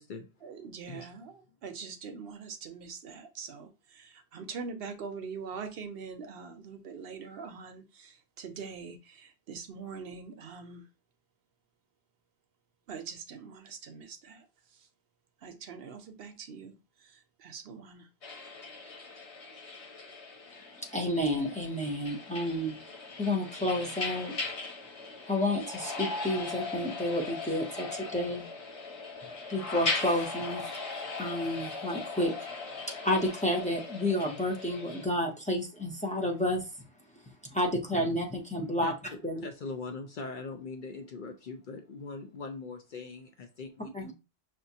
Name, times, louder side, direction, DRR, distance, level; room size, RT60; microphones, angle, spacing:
voice 1, 0.4-10.8 12.9-14.5 14.7-14.9 15.4-18.1, right 5 dB, 65° right, 0.8 m, -43 dB
sound 1, 18.2-35.1, left 3 dB, 85° left, 1.4 m, -39 dB
voice 2, 20.9-22.8 23.2-24.4 25.3-28.5 29.5-30.7 31.2-32.3 32.9-36.7 37.5-38.9 39.2-39.5 43.9-44.1, left 1 dB, 10° left, 0.6 m, -30 dB
voice 3, 39.4-44.1, left 4 dB, 60° left, 0.6 m, -41 dB
5.8 x 2.5 x 2.7 m
omnidirectional pair, 1.1 m